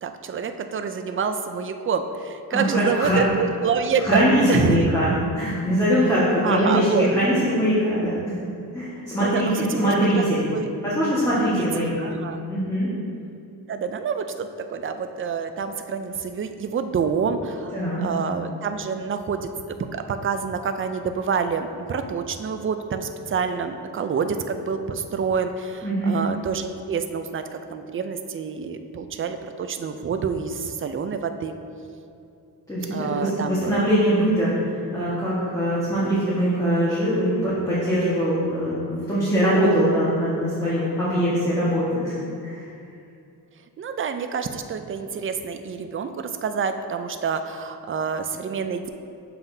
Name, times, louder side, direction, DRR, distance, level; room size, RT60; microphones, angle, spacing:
voice 1, 0.0-4.2 4.5-4.9 6.4-7.1 9.2-10.2 10.5-10.7 11.6-11.7 12.0-12.4 13.7-27.4 27.7-31.5 32.9-33.8 43.8-48.9, right 6 dB, 35° right, 8 dB, 0.4 m, -27 dB
voice 2, 2.5-3.2 4.0-5.1 5.3-8.2 8.7-10.4 10.8-11.8 12.5-12.9 17.7-18.0 25.8-26.2 32.7-42.2 42.4-42.6, equal, 10° left, -10 dB, 1.4 m, -22 dB
7.1 x 5.8 x 2.7 m, 2.6 s
cardioid pair, 90°, 40 cm